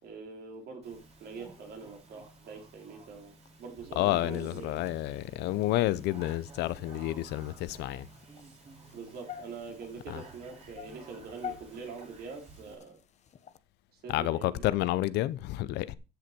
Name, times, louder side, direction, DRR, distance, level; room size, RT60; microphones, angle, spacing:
voice 1, 0.0-3.3 3.6-5.0 8.9-13.0 13.9-14.6, right 5 dB, 65° right, 4.3 m, -44 dB
Speech, 0.8-12.8, right 3 dB, 40° right, 3.6 m, -53 dB
sound 1, 3.9-13.6, left 9 dB, 40° left, 1.1 m, -50 dB
voice 2, 4.0-8.1 10.1-10.2 14.1-15.9, left 15 dB, 85° left, 0.8 m, -30 dB
13.5 x 6.7 x 4.5 m
cardioid pair, 110°, 17 cm